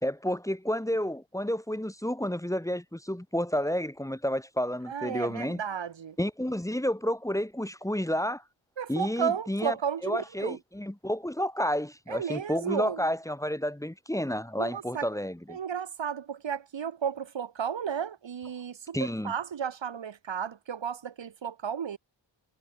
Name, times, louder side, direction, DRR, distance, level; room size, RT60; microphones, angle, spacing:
voice 1, 0.0-5.6 6.2-8.4 8.9-9.7 10.0-15.6 18.9-19.3, equal, 5° left, 2.0 m, -30 dB
voice 2, 4.9-6.2 8.8-10.6 12.1-13.1 14.6-15.1 15.5-22.0, right 7 dB, 70° right, 2.1 m, -33 dB
wide cardioid pair, 120°, 46 cm